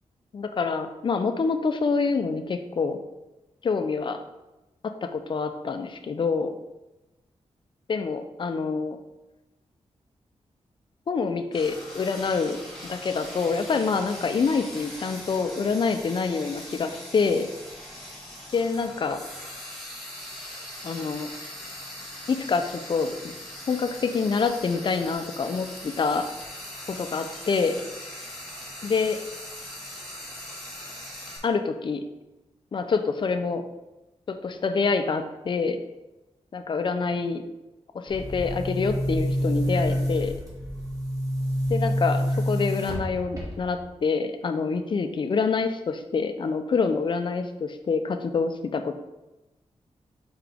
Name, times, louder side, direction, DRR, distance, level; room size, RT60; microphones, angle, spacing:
voice 1, 0.3-3.0 3.6-4.2 4.8-6.5 7.9-9.0 11.1-17.5 18.5-19.2 20.8-21.3 22.3-23.1 23.7-26.3 26.9-27.8 28.8-29.2 31.4-32.0 32.7-33.6 34.3-35.8 36.5-37.4 37.9-40.3 41.7-49.0, left 4 dB, 45° left, 7 dB, 0.5 m, -26 dB
Frying (food), 11.5-31.4, left 1 dB, 5° left, 2.0 m, -41 dB
Boom, 38.1-43.9, equal, 30° right, 1.7 m, -27 dB
5.7 x 4.8 x 3.5 m, 1.0 s
wide cardioid pair, 145°, 11 cm